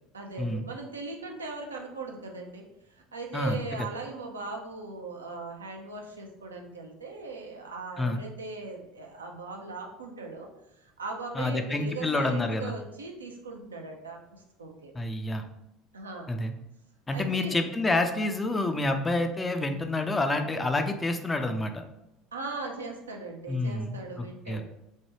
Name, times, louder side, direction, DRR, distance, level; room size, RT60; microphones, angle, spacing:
voice 1, 0.1-2.6 2.9-14.9 15.9-16.3 17.1-17.6 22.3-24.6, right 3 dB, 80° right, 1 dB, 0.4 m, -39 dB
voice 2, 11.4-12.7 14.9-15.4 16.3-16.5 17.1-21.8 23.5-24.6, left 2 dB, 15° left, 6 dB, 0.4 m, -28 dB
3.2 x 2.2 x 2.8 m, 0.86 s
figure-of-eight pair, 65°, 0 cm